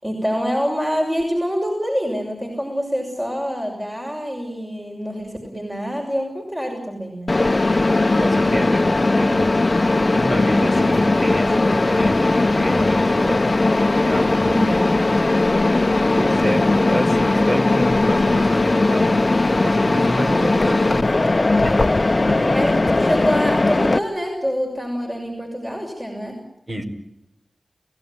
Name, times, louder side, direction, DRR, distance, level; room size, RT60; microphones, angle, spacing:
voice 1, 0.0-7.4 14.5-14.7 16.5-16.8 22.5-26.4, equal, 20° right, 1 dB, 6.5 m, -26 dB
Mechanisms, 7.3-24.0, left 2 dB, 40° left, 1.0 m, -18 dB
voice 2, 8.1-9.5 9.8-13.6 14.0-14.8 16.1-21.3 21.6-21.9 22.3-22.5 26.7-26.8, right 1 dB, 45° right, 5 dB, 5.1 m, -28 dB
29.0 x 17.0 x 9.6 m, 0.86 s
wide cardioid pair, 50°, 0 cm